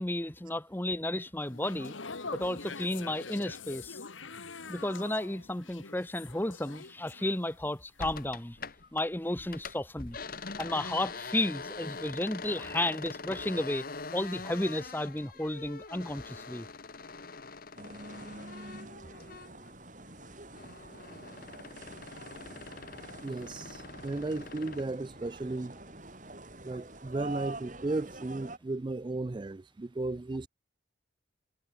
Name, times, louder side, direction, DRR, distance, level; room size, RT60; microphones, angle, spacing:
voice 1, 0.0-2.0 2.3-4.0 4.7-8.6 8.9-10.2 10.6-13.8 14.1-16.7, left 1 dB, 10° left, 0.9 m, -33 dB
sound 1, 1.5-7.7 8.0-8.3, left 4 dB, 80° left, 2.0 m, -44 dB
sound 2, 8.0-9.1 9.4-19.7 20.1-24.9, left 4 dB, 45° left, 1.2 m, -44 dB
sound 3, 17.8-28.6, right 2 dB, 40° right, 4.8 m, -46 dB
voice 2, 23.2-25.8 26.6-30.5, right 2 dB, 25° right, 0.3 m, -35 dB
head